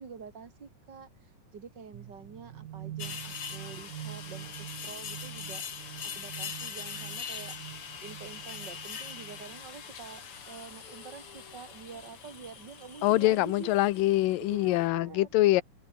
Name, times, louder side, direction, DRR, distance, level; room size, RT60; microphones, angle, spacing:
voice 1, 0.0-5.6 6.0-7.5 8.0-13.8 14.4-15.3, right 6 dB, 35° right, 3.1 m, -47 dB
sound 1, 1.9-9.7, right 12 dB, 75° right, 3.0 m, -45 dB
sound 2, 3.0-14.9, left 7 dB, 45° left, 2.8 m, -42 dB
voice 2, 13.0-15.6, left 16 dB, 80° left, 2.6 m, -24 dB
open air
omnidirectional pair, 4.0 m